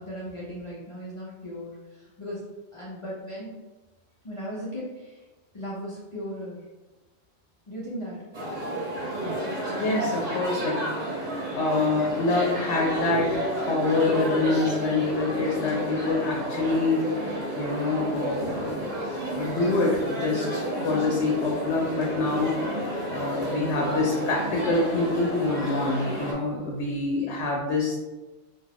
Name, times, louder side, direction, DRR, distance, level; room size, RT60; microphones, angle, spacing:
voice 1, 0.0-2.4 2.7-3.5 4.2-5.2 5.5-6.6 7.7-8.2, equal, 45° left, -6 dB, 0.4 m, -37 dB
sound 1, 8.3-26.3, right 1 dB, 40° right, 0.8 m, -31 dB
voice 2, 9.8-10.8 11.5-13.4 13.7-17.3 17.6-18.9 19.3-28.0, left 3 dB, 75° left, -2 dB, 0.9 m, -26 dB
2.5 x 2.3 x 3.3 m, 1.2 s
omnidirectional pair, 1.2 m